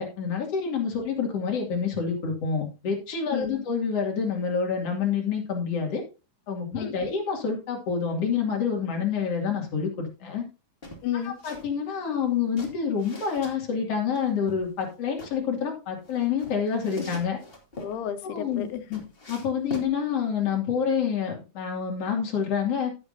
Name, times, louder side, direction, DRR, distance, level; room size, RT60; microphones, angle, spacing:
voice 1, 0.0-6.0 6.5-10.4 11.4-17.4 18.2-18.7 19.3-22.9, left 6 dB, 45° left, 1 dB, 3.1 m, -27 dB
voice 2, 3.3-3.6 6.7-7.1 11.0-11.4 17.8-19.0, left 10 dB, 90° left, 10 dB, 3.0 m, -32 dB
sound 1, 10.8-11.7 12.0-13.5 14.1-15.3 16.0-17.9 18.4-19.9, left 1 dB, 25° left, 1.4 m, -41 dB
15.0 x 7.2 x 2.7 m, 0.31 s
omnidirectional pair, 4.5 m